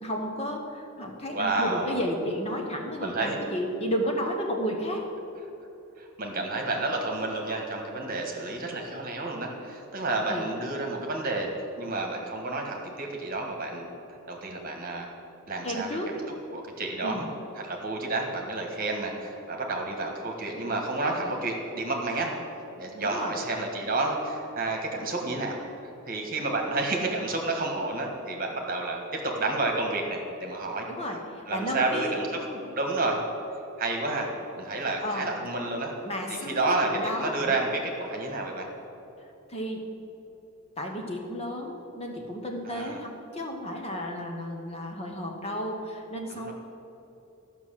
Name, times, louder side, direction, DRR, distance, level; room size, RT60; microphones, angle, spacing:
voice 1, 0.0-5.1 10.3-10.5 15.6-16.1 17.0-17.3 23.0-23.4 30.9-32.2 34.8-35.3 36.0-37.5 39.5-39.8 40.8-46.5, equal, 25° left, 1 dB, 1.1 m, -32 dB
voice 2, 1.3-2.0 3.0-3.4 6.0-11.5 11.8-15.1 15.5-16.0 16.5-17.2 17.5-22.4 22.8-25.6 26.1-30.9 31.5-33.2 33.8-34.3 34.6-35.9 36.3-38.7 42.7-43.0 46.3-46.5, right 2 dB, 40° right, 1 dB, 1.5 m, -30 dB
12.5 x 6.0 x 7.5 m, 3.0 s
head